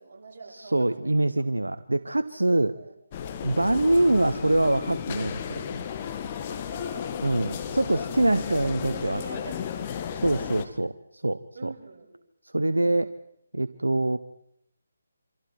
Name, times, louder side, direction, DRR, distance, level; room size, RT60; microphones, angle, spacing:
voice 1, 0.0-1.4 2.5-2.9 6.5-7.7 8.3-9.9 10.3-10.6 11.5-12.1, right 4 dB, 50° right, -1 dB, 6.6 m, -44 dB
voice 2, 0.5-2.7 3.4-5.8 7.2-9.2 10.2-11.7 12.4-13.1 13.5-14.2, right 1 dB, 80° right, 11 dB, 0.9 m, -24 dB
sound 1, 3.1-10.7, left 8 dB, 30° left, 1.7 m, -34 dB
28.5 x 25.5 x 4.6 m, 0.74 s
figure-of-eight pair, 150°, 0 cm